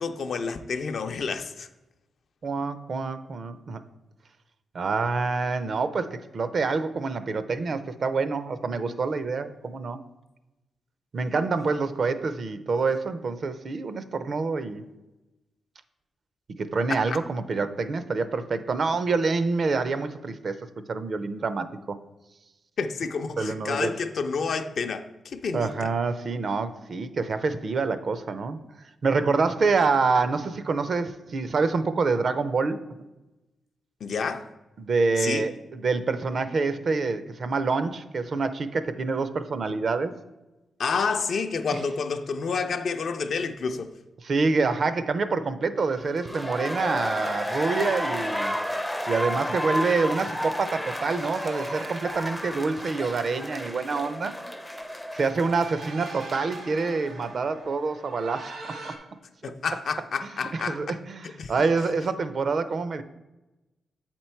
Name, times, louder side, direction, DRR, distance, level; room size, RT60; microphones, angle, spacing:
voice 1, 0.0-1.7 16.9-17.0 22.8-25.9 34.0-34.5 35.2-35.5 40.8-43.9 59.4-60.8 61.4-61.5, left 5 dB, 65° left, 0.5 m, -29 dB
voice 2, 2.4-3.8 4.7-10.0 11.1-14.8 16.6-22.0 23.4-24.0 25.5-28.6 29.0-32.8 34.8-40.1 41.7-41.8 44.2-48.6 49.1-54.4 55.1-58.5 58.8-58.9 60.5-63.0, right 4 dB, 50° right, 0.5 m, -27 dB
sound 1, 46.1-56.9 57.2-57.3, equal, 5° left, 0.4 m, -32 dB
sound 2, 50.6-59.0, right 3 dB, 75° right, 1.1 m, -44 dB
7.5 x 4.4 x 4.4 m
cardioid pair, 105°, 0 cm